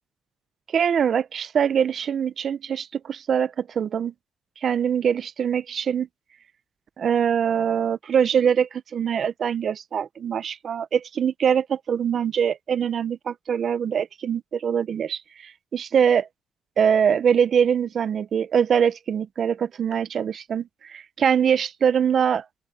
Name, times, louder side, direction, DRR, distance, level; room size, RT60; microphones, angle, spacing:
voice 1, 0.7-4.1 4.6-6.1 7.0-16.3 16.8-22.4, right 8 dB, 55° right, 0.8 m, -23 dB
open air
cardioid pair, 90°, 0 cm